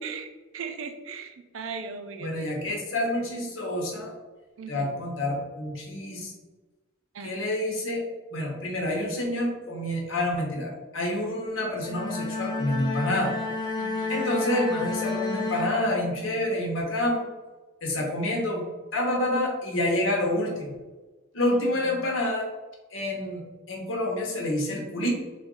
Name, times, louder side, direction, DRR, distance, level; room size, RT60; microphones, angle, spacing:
voice 1, 0.0-2.7 4.6-4.9 7.1-7.5 13.8-14.2 21.8-22.0, right 5 dB, 80° right, 7 dB, 0.5 m, -38 dB
voice 2, 2.2-4.1 4.7-6.3 7.2-8.0 8.3-13.3 14.1-17.2 17.8-18.6 18.9-20.7 21.3-22.5 22.9-25.1, left 1 dB, 75° left, -1 dB, 1.1 m, -28 dB
Bowed string instrument, 11.7-16.4, left 3 dB, 20° left, 0.5 m, -31 dB
3.9 x 2.5 x 3.8 m, 1.2 s
head